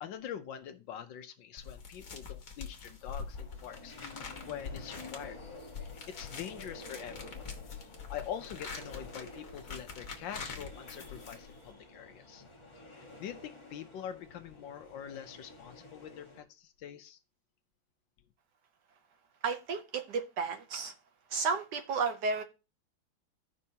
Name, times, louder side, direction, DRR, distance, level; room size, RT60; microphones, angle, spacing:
voice 1, 0.0-5.4 5.8-7.5 8.1-12.4 12.9-17.2, left 9 dB, 70° left, 1.3 m, -44 dB
sound 1, 1.6-11.7, left 5 dB, 45° left, 1.5 m, -45 dB
sound 2, 3.1-16.4, left 2 dB, 20° left, 1.1 m, -51 dB
voice 2, 19.4-20.9 21.3-22.4, right 5 dB, 65° right, 1.1 m, -32 dB
15.0 x 5.4 x 2.8 m
omnidirectional pair, 2.3 m